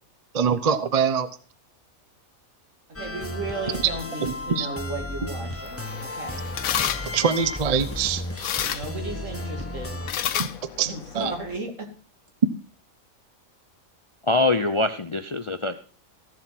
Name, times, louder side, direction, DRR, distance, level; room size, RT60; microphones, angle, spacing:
voice 1, 0.3-1.3 4.2-4.7 7.1-8.2 10.4-10.5 10.8-11.3, right 6 dB, 40° right, 13 dB, 0.6 m, -24 dB
sound 1, 2.9-10.1, left 1 dB, 10° left, 1.1 m, -34 dB
voice 2, 3.0-6.4 8.6-10.0 10.9-11.9, right 2 dB, 65° right, 3 dB, 3.0 m, -35 dB
sound 2, 5.5-11.6, left 10 dB, 85° left, 1.2 m, -32 dB
voice 3, 14.2-15.8, left 2 dB, 35° left, 10 dB, 0.5 m, -23 dB
15.0 x 7.6 x 5.9 m, 0.42 s
omnidirectional pair, 1.4 m